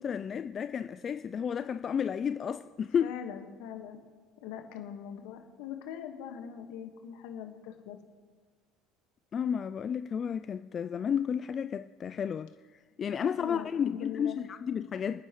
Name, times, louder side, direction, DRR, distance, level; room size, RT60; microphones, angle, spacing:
voice 1, 0.0-3.1 9.3-15.2, left 7 dB, 40° left, 0.4 m, -32 dB
voice 2, 3.0-4.0 4.4-8.0 13.4-14.4, left 8 dB, 70° left, 1.6 m, -42 dB
28.0 x 9.8 x 3.2 m
hypercardioid pair, 70°, 0 cm